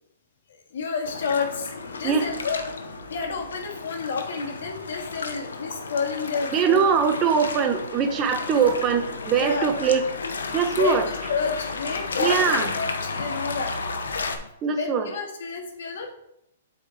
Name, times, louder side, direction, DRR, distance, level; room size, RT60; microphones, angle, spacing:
voice 1, 0.5-2.6 3.1-6.9 9.4-9.7 10.7-13.7 14.4-14.5 14.8-16.1, left 5 dB, 70° left, 2 dB, 1.8 m, -30 dB
sound 1, 1.0-14.4, left 3 dB, 90° left, 0.9 m, -32 dB
voice 2, 6.5-10.0 10.5-11.1 12.2-12.7 14.6-15.1, right 6 dB, 25° right, 8 dB, 0.9 m, -22 dB
7.9 x 4.2 x 4.4 m, 0.79 s
hypercardioid pair, 135°, 0 cm